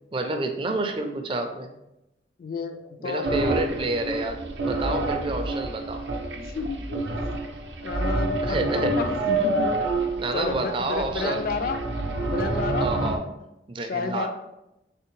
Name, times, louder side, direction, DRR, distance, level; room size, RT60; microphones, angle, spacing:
voice 1, 0.1-1.7 3.0-6.0 8.4-9.0 10.2-11.4 12.8-13.2 13.7-14.3, right 2 dB, 30° right, 5 dB, 0.4 m, -29 dB
voice 2, 2.4-3.5 6.4-7.1 7.8-9.7 10.3-11.9 12.2-12.9 13.8-14.3, left 4 dB, 55° left, 8 dB, 0.3 m, -31 dB
sound 1, 3.2-13.2, right 2 dB, 85° right, 0.5 m, -28 dB
3.4 x 3.3 x 3.1 m, 0.89 s
head